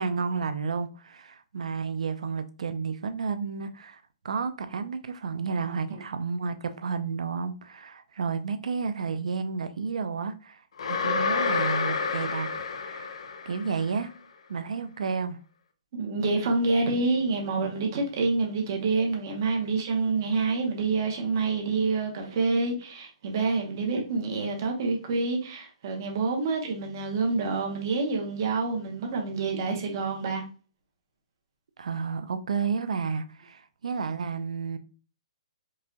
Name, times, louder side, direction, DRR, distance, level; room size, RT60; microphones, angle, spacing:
voice 1, 0.0-10.6 10.9-12.5 12.8-13.2 13.5-14.1 14.5-15.4 31.8-34.8, right 5 dB, 85° right, 0.5 m, -31 dB
sound 1, 10.8-13.9, left 4 dB, 60° left, 0.6 m, -29 dB
voice 2, 15.9-30.4, right 3 dB, 35° right, 0.9 m, -27 dB
4.7 x 2.2 x 2.7 m
hypercardioid pair, 180°, 3 cm